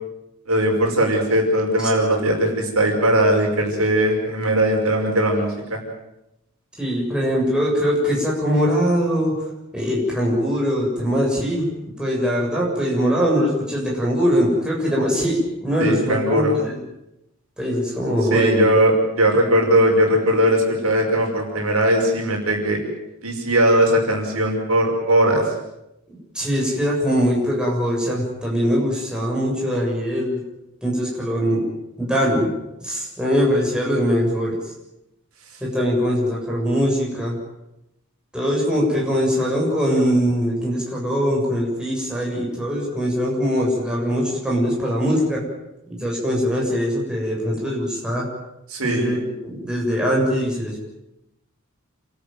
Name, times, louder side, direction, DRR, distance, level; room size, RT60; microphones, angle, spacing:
voice 1, 0.5-5.8 15.8-16.5 18.3-22.8 23.2-25.4 48.7-49.1, right 1 dB, 70° right, 1 dB, 5.7 m, -19 dB
voice 2, 6.8-9.5 9.7-11.7 12.0-16.8 17.6-18.6 26.3-30.4 30.8-31.6 32.0-32.5 32.8-34.7 35.6-37.4 38.3-45.4 45.9-48.3 48.8-49.2 49.4-50.8, equal, 5° right, -4 dB, 7.3 m, -22 dB
28.5 x 13.5 x 9.3 m, 0.88 s
head